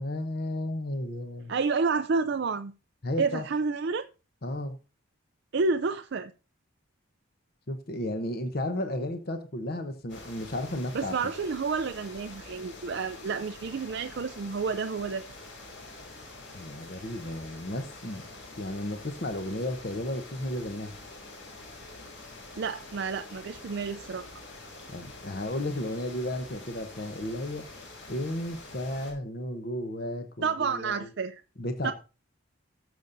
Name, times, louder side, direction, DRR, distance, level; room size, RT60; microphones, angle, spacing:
voice 1, 0.0-1.5 3.0-3.4 4.4-4.7 7.7-11.1 16.5-18.2 18.5-20.9 24.9-27.6 28.1-31.0 31.6-31.9, left 1 dB, 50° left, 0.9 m, -33 dB
voice 2, 1.5-2.7 3.2-4.0 5.5-6.3 10.9-15.2 22.6-24.3 30.4-31.4 31.8-31.9, right 4 dB, 55° right, 0.4 m, -29 dB
sound 1, 10.1-29.1, left 2 dB, 65° left, 5.0 m, -46 dB
18.5 x 6.8 x 2.6 m
head